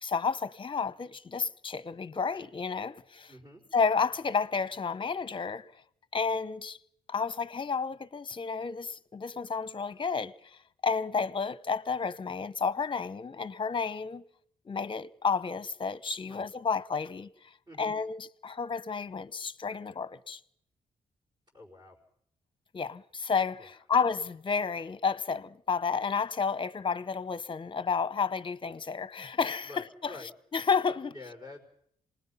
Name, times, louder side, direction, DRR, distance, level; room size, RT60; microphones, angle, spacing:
voice 1, 0.0-3.3 3.7-5.7 6.1-6.8 7.1-14.2 14.7-20.4 22.7-30.2 30.5-31.1, left 5 dB, 35° left, 0.8 m, -31 dB
voice 2, 3.3-3.6 16.3-16.4 17.7-18.0 21.5-22.0 23.6-23.7 29.6-30.3 31.1-31.7, left 2 dB, 30° right, 4.7 m, -48 dB
26.5 x 19.5 x 5.6 m
cardioid pair, 70°, 15 cm